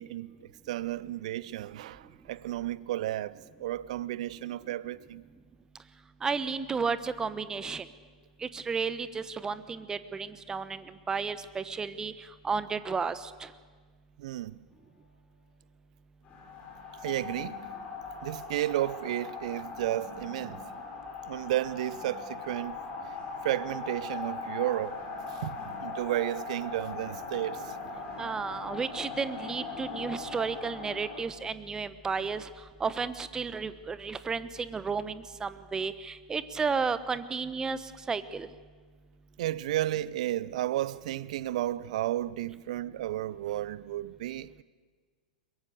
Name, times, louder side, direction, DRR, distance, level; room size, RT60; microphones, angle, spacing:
voice 1, 0.0-5.2 14.2-14.5 17.0-17.7 18.2-20.6 21.3-22.9 23.4-25.0 25.4-27.8 39.4-44.6, right 14 dB, 55° right, 0.7 m, -33 dB
voice 2, 6.2-7.8 8.4-12.1 12.4-13.5 28.2-32.5 32.8-38.5, right 5 dB, 15° right, 1.1 m, -33 dB
sound 1, 16.2-31.2, left 4 dB, 30° left, 5.7 m, -40 dB
22.5 x 22.0 x 6.6 m
figure-of-eight pair, 100°, 4 cm